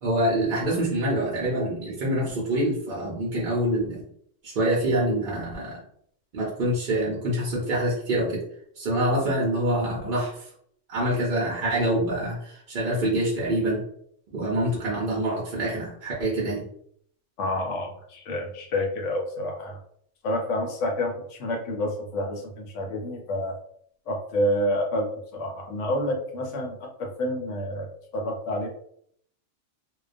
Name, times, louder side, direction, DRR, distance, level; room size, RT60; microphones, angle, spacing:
voice 1, 0.0-4.1 4.4-5.8 6.3-8.4 8.8-10.5 10.9-13.8 14.3-16.7, right 1 dB, 55° right, -4 dB, 0.7 m, -26 dB
voice 2, 17.4-19.8 20.2-21.1 21.4-23.6 24.1-25.1 25.3-27.9 28.1-28.7, left 1 dB, 85° left, 2 dB, 1.0 m, -28 dB
2.3 x 2.2 x 2.5 m, 0.67 s
omnidirectional pair, 1.2 m